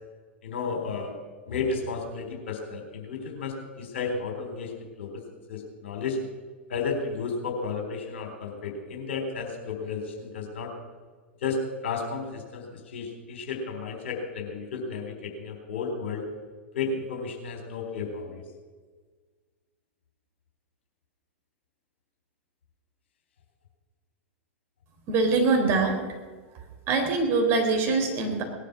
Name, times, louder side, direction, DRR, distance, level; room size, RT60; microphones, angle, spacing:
voice 1, 0.4-1.2 1.5-4.7 5.0-5.2 5.5-6.2 6.7-10.7 11.4-16.2 16.7-18.4, left 4 dB, 60° left, 3 dB, 3.8 m, -33 dB
voice 2, 25.1-26.0 26.9-28.4, right 3 dB, 35° right, 3 dB, 3.9 m, -23 dB
19.0 x 11.5 x 6.2 m, 1.5 s
figure-of-eight pair, 95°, 7 cm